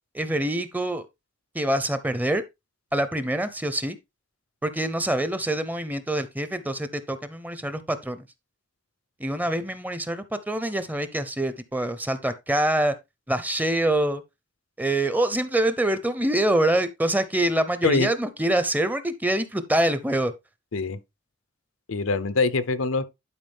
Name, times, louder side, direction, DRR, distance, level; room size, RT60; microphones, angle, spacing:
voice 1, 0.1-1.1 1.5-2.4 2.9-4.0 4.6-8.2 9.2-12.9 13.3-14.2 14.8-20.3, right 1 dB, 10° right, 0.7 m, -25 dB
voice 2, 21.9-23.0, left 3 dB, 85° left, 0.8 m, -24 dB
11.0 x 4.9 x 3.5 m
head